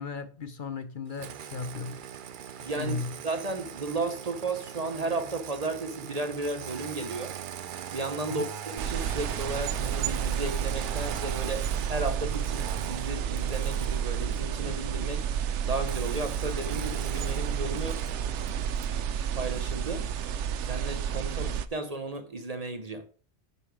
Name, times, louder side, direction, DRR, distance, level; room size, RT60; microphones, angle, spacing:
voice 1, 0.0-2.0 2.6-3.1 8.2-8.5, left 4 dB, 50° left, 0.8 m, -36 dB
Engine starting, 1.1-14.6 15.8-19.0, right 9 dB, 55° right, 0.6 m, -41 dB
voice 2, 2.6-3.0 3.2-7.4 7.9-15.3 15.6-18.0 18.9-19.0 19.3-20.1 20.7-23.1, right 2 dB, 35° right, 0.9 m, -34 dB
sound 1, 8.8-21.7, right 8 dB, 85° right, 0.9 m, -31 dB
9.4 x 5.5 x 4.9 m
omnidirectional pair, 1.2 m